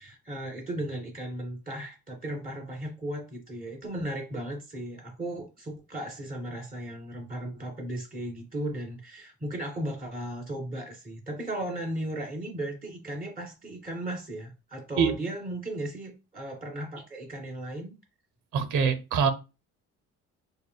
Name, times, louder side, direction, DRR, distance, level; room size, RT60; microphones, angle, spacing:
voice 1, 0.0-17.9, right 1 dB, 30° right, 2.5 m, -36 dB
voice 2, 18.5-19.3, right 6 dB, 90° right, 0.8 m, -24 dB
6.7 x 2.3 x 2.2 m
cardioid pair, 90°, 30 cm